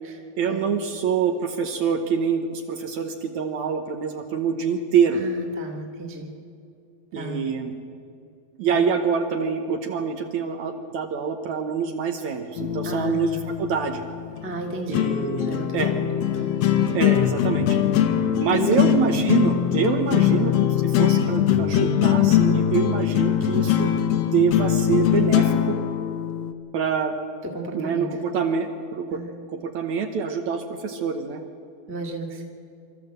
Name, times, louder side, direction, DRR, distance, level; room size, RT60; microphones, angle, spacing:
voice 1, 0.4-5.2 7.1-7.8 8.6-14.0 14.9-15.5 15.7-15.9 16.9-17.8 18.4-25.8 26.7-27.1 27.7-29.2 29.5-31.4, right 6 dB, 70° right, 4 dB, 2.0 m, -25 dB
voice 2, 5.1-6.3 7.1-7.4 8.7-8.8 12.8-13.1 14.4-15.0 15.4-16.0 16.3-16.6 18.5-18.8 27.5-28.1 29.1-29.3 31.9-32.4, right 1 dB, 5° right, 0 dB, 1.0 m, -33 dB
sound 1, 12.6-26.5, left 10 dB, 70° left, 1.7 m, -22 dB
25.0 x 13.5 x 7.9 m, 2.5 s
omnidirectional pair, 4.1 m